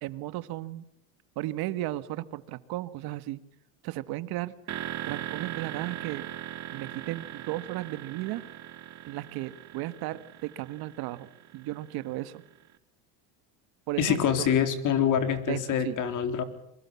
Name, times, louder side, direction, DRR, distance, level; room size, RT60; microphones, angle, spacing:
voice 1, 0.0-0.8 1.3-3.4 3.8-4.5 5.1-6.2 6.7-8.4 9.0-12.4 13.9-14.5 15.5-16.0, right 16 dB, 55° right, 13 dB, 1.7 m, -35 dB
sound 1, 4.7-12.5, right 12 dB, 40° right, 2.6 m, -40 dB
voice 2, 14.0-16.4, left 8 dB, 45° left, 8 dB, 4.1 m, -25 dB
27.0 x 24.5 x 7.2 m, 0.75 s
supercardioid pair, 130°, 44 cm